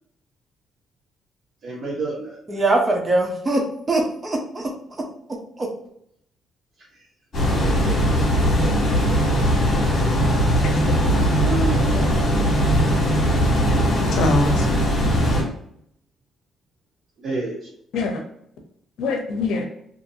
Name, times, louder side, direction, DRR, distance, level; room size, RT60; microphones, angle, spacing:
voice 1, 1.6-2.4 7.6-9.4 10.7-10.8 11.4-12.1 17.2-17.7, right 2 dB, 50° right, -6 dB, 0.9 m, -31 dB
voice 2, 2.5-4.6 5.6-5.7, right 2 dB, 30° right, 0 dB, 0.8 m, -22 dB
sound 1, 7.3-15.4, equal, 50° left, 1.5 m, -19 dB
voice 3, 13.6-14.7 17.9-18.2 19.0-19.6, left 3 dB, 80° left, 3 dB, 0.6 m, -24 dB
2.7 x 2.6 x 2.7 m, 0.69 s
cardioid pair, 90°, 0 cm